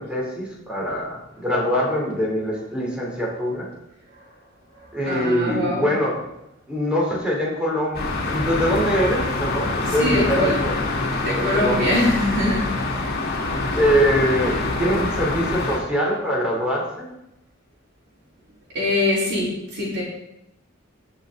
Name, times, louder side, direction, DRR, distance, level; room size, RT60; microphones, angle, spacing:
voice 1, 0.0-3.7 4.9-6.1 6.7-10.7 11.4-12.0 13.7-17.1, equal, 5° right, -4 dB, 3.4 m, -23 dB
voice 2, 4.7-5.9 9.8-10.6 11.2-13.0 18.7-20.0, left 1 dB, 60° right, -8 dB, 4.4 m, -23 dB
sound 1, 7.9-15.8, left 2 dB, 50° left, 2.6 m, -25 dB
18.5 x 6.5 x 4.0 m, 0.86 s
head